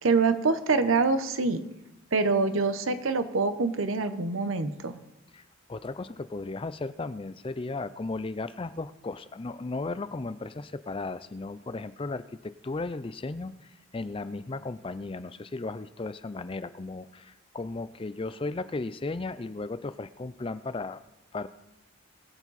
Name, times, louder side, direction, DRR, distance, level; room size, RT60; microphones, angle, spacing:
voice 1, 0.0-1.6 2.1-5.0, right 4 dB, 80° right, 10 dB, 0.9 m, -25 dB
voice 2, 5.7-21.0 21.3-21.5, left 3 dB, 25° left, 14 dB, 0.4 m, -35 dB
21.0 x 7.3 x 4.1 m, 0.92 s
head